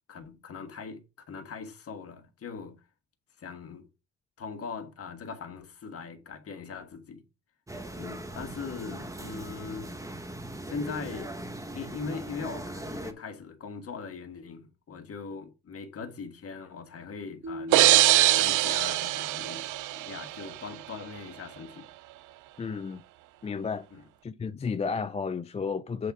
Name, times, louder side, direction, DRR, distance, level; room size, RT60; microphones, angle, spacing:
voice 1, 0.1-2.8 3.4-3.9 4.4-7.2 8.0-9.9 10.6-11.3 11.7-17.9 18.4-19.7 19.9-21.9 23.9-24.0, left 5 dB, 50° left, 1.5 m, -40 dB
sound 1, 7.7-13.1, right 1 dB, 10° right, 1.0 m, -39 dB
sound 2, 17.4-19.6, left 1 dB, 40° right, 1.1 m, -42 dB
sound 3, 17.7-20.5, right 16 dB, 90° right, 0.5 m, -22 dB
voice 2, 22.6-23.0 23.4-23.9 24.2-26.1, left 5 dB, 20° left, 0.4 m, -32 dB
7.7 x 3.5 x 4.8 m
cardioid pair, 90°, 30 cm